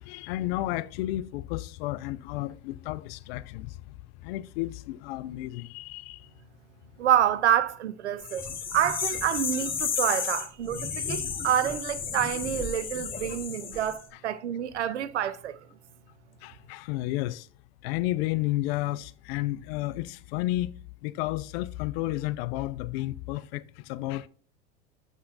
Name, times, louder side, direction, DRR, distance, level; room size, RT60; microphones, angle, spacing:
voice 1, 0.0-3.8 4.2-6.2 14.1-14.2 16.4-17.5 17.8-20.7 21.0-24.3, left 16 dB, 60° left, 0.5 m, -32 dB
voice 2, 7.0-8.5 8.7-15.6, right 10 dB, 90° right, 0.5 m, -27 dB
sound 1, 8.2-14.0, left 6 dB, 25° left, 1.2 m, -33 dB
7.3 x 5.6 x 2.5 m
hypercardioid pair, 85°, 33 cm